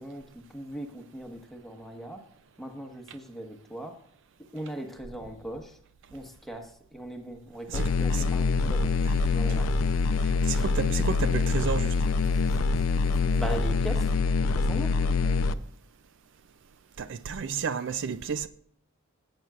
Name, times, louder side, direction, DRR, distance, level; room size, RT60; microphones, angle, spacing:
voice 1, 0.0-2.2 2.6-4.0 4.5-5.8 6.1-8.9 9.3-9.7 10.5-10.7 12.1-12.8 13.4-14.1 14.4-15.0, right 1 dB, ahead, 1.3 m, -39 dB
sound 1, 7.7-15.5, left 4 dB, 70° left, 0.6 m, -25 dB
voice 2, 10.5-11.9 17.0-18.5, right 5 dB, 55° right, 0.4 m, -31 dB
17.5 x 8.8 x 2.4 m
head